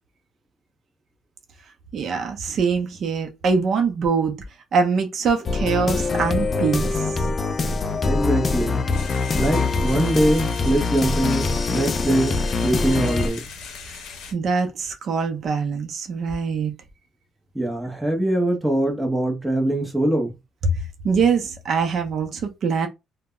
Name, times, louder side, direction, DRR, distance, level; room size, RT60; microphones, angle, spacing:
voice 1, 1.9-4.4 4.7-7.3 13.9-14.0 14.3-16.7 21.0-22.9, right 5 dB, 45° right, 0.5 m, -23 dB
sound 1, 5.5-13.3, left 4 dB, 30° left, 0.3 m, -24 dB
voice 2, 8.0-8.9 9.3-13.5 17.5-20.4, right 1 dB, 5° right, 0.6 m, -23 dB
sound 2, 8.9-14.3, left 5 dB, 70° left, 0.7 m, -38 dB
2.1 x 2.0 x 3.6 m
cardioid pair, 145°, 0 cm